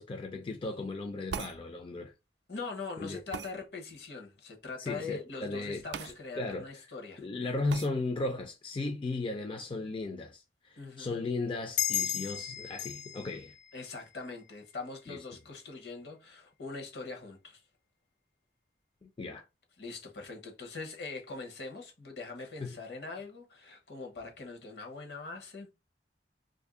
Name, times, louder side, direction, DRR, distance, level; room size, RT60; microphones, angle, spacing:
voice 1, 0.0-2.1 3.0-3.2 4.8-6.8 7.2-13.5 15.1-15.2 19.0-19.4 22.6-22.8, left 3 dB, 30° left, 0.4 m, -36 dB
sound 1, 1.3-1.6 3.3-3.5 5.9-6.1 6.5-6.6 7.7-7.9, right 6 dB, 70° right, 0.3 m, -38 dB
voice 2, 2.5-7.3 10.8-11.1 13.7-17.6 19.8-25.7, left 4 dB, 65° left, 1.0 m, -42 dB
sound 2, 11.8-14.9, left 10 dB, 85° left, 0.5 m, -35 dB
2.7 x 2.6 x 3.7 m
head